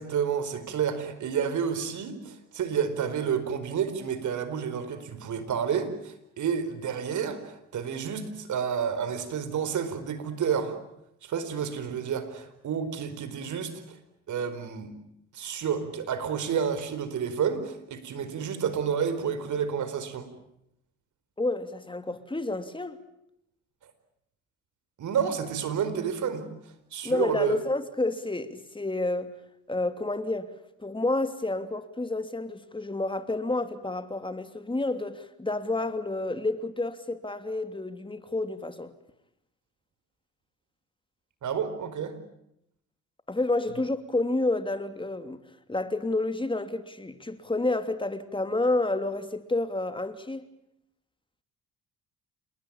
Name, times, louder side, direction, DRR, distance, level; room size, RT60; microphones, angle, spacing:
voice 1, 0.0-10.8 11.2-14.0 14.3-14.9 15.3-20.3 25.0-26.5 26.9-27.6 41.4-42.2, right 7 dB, 65° right, 4.6 m, -30 dB
voice 2, 21.4-23.0 27.0-29.3 29.7-30.5 30.8-38.9 43.3-45.4 45.7-50.4, left 2 dB, 15° left, 3.0 m, -29 dB
28.5 x 21.5 x 8.8 m
supercardioid pair, 65°, 32 cm